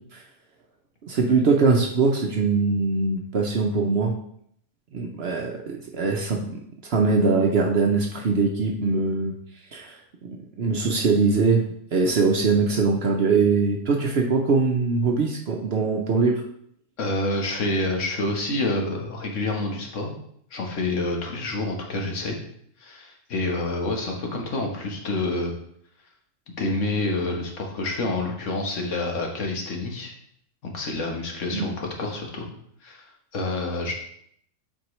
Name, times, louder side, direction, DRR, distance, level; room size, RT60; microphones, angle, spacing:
voice 1, 1.0-4.1 4.9-6.6 6.9-9.3 9.7-10.0 10.2-11.6 11.9-16.4 31.5-31.7, right 4 dB, 55° right, 1 dB, 0.9 m, -22 dB
voice 2, 17.0-20.1 20.5-22.4 22.8-25.5 26.6-30.1 30.6-32.5 32.8-33.1 33.3-33.9, left 2 dB, 70° left, 1 dB, 1.5 m, -28 dB
7.7 x 4.4 x 3.1 m, 0.69 s
omnidirectional pair, 1.4 m